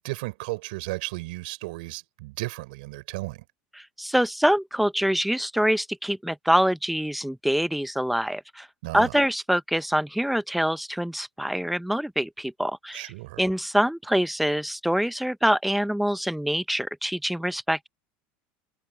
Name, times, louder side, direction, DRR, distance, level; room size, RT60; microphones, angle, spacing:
voice 1, 0.0-3.4 8.8-9.1 12.9-13.4, right 22 dB, 80° right, 5.5 m, -34 dB
voice 2, 3.8-8.7 8.9-13.1 13.4-17.9, equal, ahead, 0.5 m, -25 dB
supercardioid pair, 145°, 5 cm